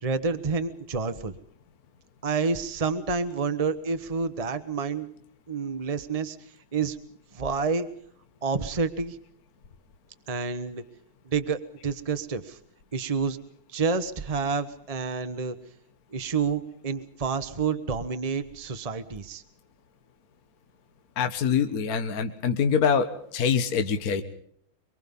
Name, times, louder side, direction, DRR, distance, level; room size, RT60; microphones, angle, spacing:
voice 1, 0.0-1.3 2.2-5.1 5.5-7.0 7.3-7.9 8.4-9.2 10.3-10.8 11.2-12.6 12.9-13.4 13.7-15.6 16.1-19.4, right 5 dB, 35° right, 10 dB, 0.5 m, -29 dB
voice 2, 21.2-23.1 23.3-24.2, left 6 dB, 45° left, 8 dB, 1.7 m, -24 dB
25.0 x 23.5 x 5.4 m, 0.66 s
omnidirectional pair, 2.4 m